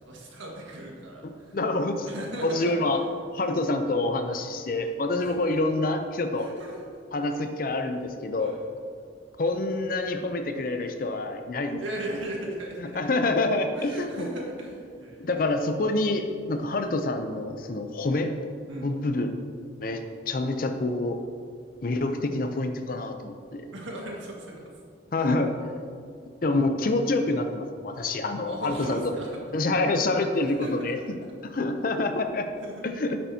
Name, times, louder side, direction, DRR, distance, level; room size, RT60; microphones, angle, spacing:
voice 1, 0.0-1.6 2.0-3.2 5.2-5.3 6.4-6.8 7.7-7.8 8.4-8.6 11.7-13.1 13.7-15.3 18.7-18.9 23.7-24.6 28.4-29.4 30.5-30.9 32.6-32.9, right 1 dB, 85° right, -2 dB, 1.7 m, -37 dB
voice 2, 1.2-2.1 2.4-3.0 3.3-6.5 7.1-8.6 9.4-11.8 12.8-14.3 15.2-18.4 18.8-19.4 19.8-21.2 21.8-23.7 25.1-25.5 26.4-29.0 29.5-31.0 31.4-32.5 32.8-33.2, left 2 dB, 45° left, 7 dB, 0.5 m, -27 dB
10.5 x 7.6 x 2.8 m, 2.3 s
head